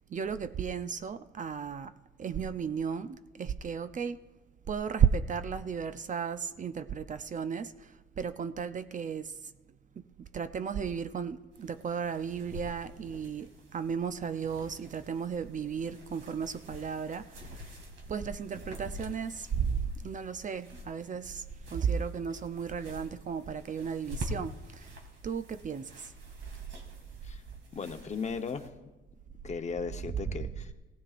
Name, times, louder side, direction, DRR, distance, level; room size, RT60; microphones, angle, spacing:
voice 1, 0.1-1.9 2.2-4.2 4.7-9.4 10.2-17.5 18.1-21.4 21.7-24.9 25.2-26.1, right 7 dB, 40° right, 0.6 m, -34 dB
sound 1, 11.5-28.7, equal, 70° right, 2.5 m, -47 dB
voice 2, 27.7-28.7 29.4-30.7, left 5 dB, 35° left, 1.0 m, -36 dB
16.5 x 16.0 x 2.5 m
cardioid pair, 90°, 20 cm